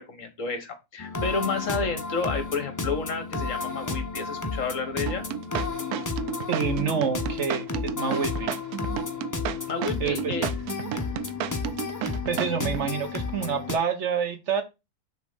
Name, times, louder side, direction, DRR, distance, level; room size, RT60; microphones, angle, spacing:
voice 1, 0.0-5.2 9.7-10.5 10.9-11.0, left 4 dB, 60° left, 8 dB, 1.6 m, -31 dB
sound 1, 1.0-13.8, left 4 dB, 25° left, 0.4 m, -32 dB
sound 2, 5.1-12.9, right 11 dB, 85° right, 1.1 m, -32 dB
voice 2, 6.5-8.5 10.0-10.4 12.3-14.6, right 6 dB, 60° right, 9 dB, 1.0 m, -28 dB
6.5 x 3.4 x 5.0 m, 0.24 s
omnidirectional pair, 1.6 m